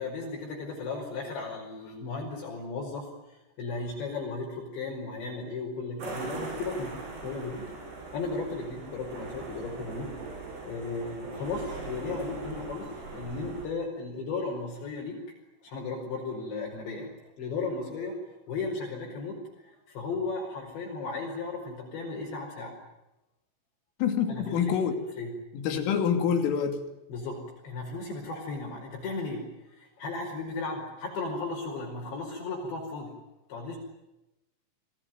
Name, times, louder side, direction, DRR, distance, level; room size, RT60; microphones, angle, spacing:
voice 1, 0.0-7.6 8.1-10.1 10.7-15.2 15.6-17.1 17.4-18.2 18.5-22.8 24.3-24.9 25.2-25.3 27.1-33.1 33.5-33.8, left 3 dB, 65° left, -1 dB, 7.2 m, -35 dB
sound 1, 6.0-13.7, right 3 dB, 60° right, 8.1 m, -40 dB
voice 2, 24.0-24.9 25.5-26.8, left 7 dB, 85° left, 6 dB, 5.3 m, -26 dB
28.0 x 20.5 x 9.4 m, 0.95 s
omnidirectional pair, 5.6 m